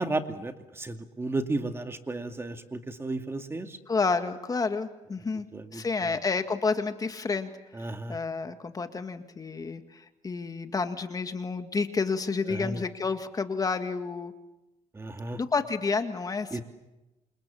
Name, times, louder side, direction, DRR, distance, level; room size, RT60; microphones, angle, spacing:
voice 1, 0.0-3.8 5.5-6.2 7.7-8.2 12.5-12.8 14.9-15.4 16.5-16.6, right 2 dB, 20° right, 6 dB, 2.3 m, -33 dB
voice 2, 3.9-5.5 5.7-7.5 8.1-14.3 15.4-16.6, left 4 dB, 30° left, 8 dB, 1.9 m, -30 dB
28.5 x 28.0 x 7.1 m, 1.0 s
cardioid pair, 110°, 12 cm